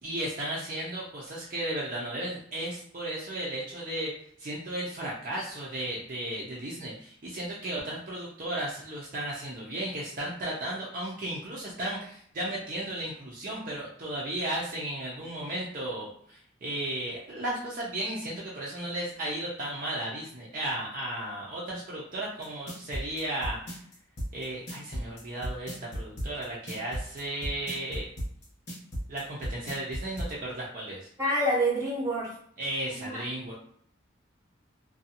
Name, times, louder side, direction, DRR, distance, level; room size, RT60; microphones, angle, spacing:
voice 1, 0.0-4.1 4.4-23.7 24.3-28.1 29.1-31.1 32.6-33.5, right 1 dB, 45° right, -5 dB, 0.5 m, -35 dB
sound 1, 22.4-30.3, equal, 55° left, 0.9 m, -35 dB
voice 2, 31.2-32.3 32.9-33.2, right 1 dB, 15° right, -4 dB, 0.8 m, -27 dB
2.6 x 2.2 x 2.7 m, 0.63 s
head